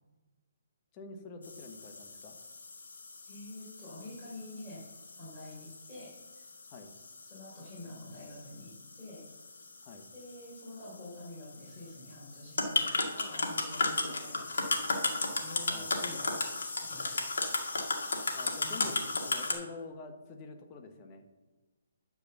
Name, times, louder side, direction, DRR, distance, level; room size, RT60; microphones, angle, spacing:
voice 1, 0.9-2.4 6.7-6.9 9.8-10.1 15.7-16.2 18.3-21.2, left 3 dB, 30° left, 5 dB, 1.2 m, -46 dB
sound 1, 1.4-19.5, left 3 dB, 80° left, 2.1 m, -36 dB
voice 2, 3.2-4.8 5.2-6.4 7.2-8.7 9.0-9.2 10.1-16.3 16.8-17.2 18.6-19.0, left 1 dB, 10° left, -9 dB, 3.8 m, -48 dB
11.5 x 4.9 x 6.8 m, 1.2 s
hypercardioid pair, 150°, 0 cm